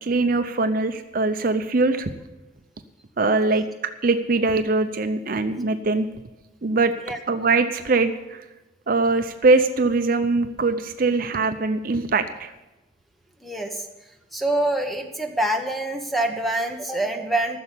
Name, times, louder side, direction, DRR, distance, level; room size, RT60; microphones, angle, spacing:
voice 1, 0.0-2.1 3.2-3.7 4.0-6.1 6.6-6.9 7.3-8.4 8.9-12.5, right 3 dB, 50° right, 8 dB, 0.6 m, -22 dB
voice 2, 13.4-13.9 14.3-17.6, right 1 dB, ahead, 4 dB, 1.2 m, -25 dB
14.0 x 6.9 x 8.3 m, 1.0 s
head